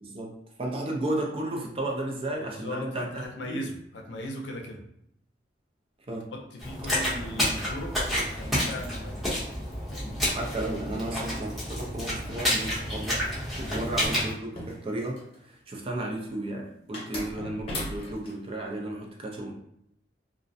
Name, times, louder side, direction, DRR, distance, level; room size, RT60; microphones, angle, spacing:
voice 1, 0.0-3.1 3.4-3.6 6.1-6.3 10.3-13.2 13.6-19.5, right 1 dB, 30° right, 0 dB, 0.4 m, -33 dB
voice 2, 2.4-4.8 6.3-9.4 9.9-10.2 13.6-13.8, left 1 dB, 85° left, 2 dB, 0.5 m, -38 dB
sound 1, 6.6-14.3, equal, ahead, 0.7 m, -30 dB
sound 2, 13.9-15.4 16.9-18.4, left 1 dB, 35° left, 0.7 m, -37 dB
2.4 x 2.0 x 2.6 m, 0.75 s
head